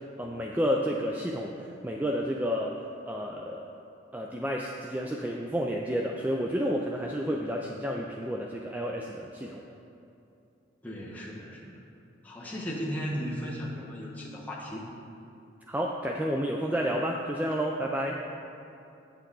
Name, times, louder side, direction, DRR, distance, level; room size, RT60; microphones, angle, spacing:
voice 1, 0.2-2.8 3.1-3.7 4.1-9.6 15.7-18.1, equal, 10° right, -1 dB, 0.3 m, -30 dB
voice 2, 10.8-11.8 12.2-14.9 18.1-18.2, equal, 10° left, -4 dB, 1.0 m, -36 dB
8.3 x 7.9 x 3.8 m, 2.8 s
head